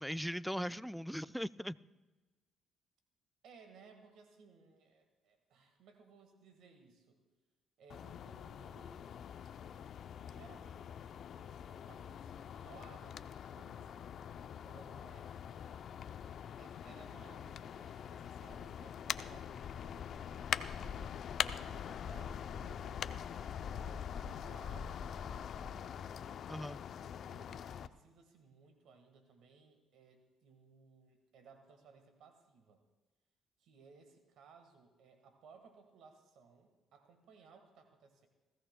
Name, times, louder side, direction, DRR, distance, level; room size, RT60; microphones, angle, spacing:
voice 1, 0.0-1.8 26.5-26.8, equal, ahead, 16 dB, 0.3 m, -39 dB
voice 2, 3.4-7.2 7.8-9.1 10.1-14.1 14.6-15.3 16.6-20.8 21.4-26.1 27.2-32.8 33.6-38.3, right 5 dB, 75° right, 5 dB, 1.5 m, -61 dB
sound 1, 7.9-27.9, left 8 dB, 65° left, 0.5 m, -43 dB
20.5 x 15.5 x 2.2 m, 1.2 s
supercardioid pair, 70°, 0 cm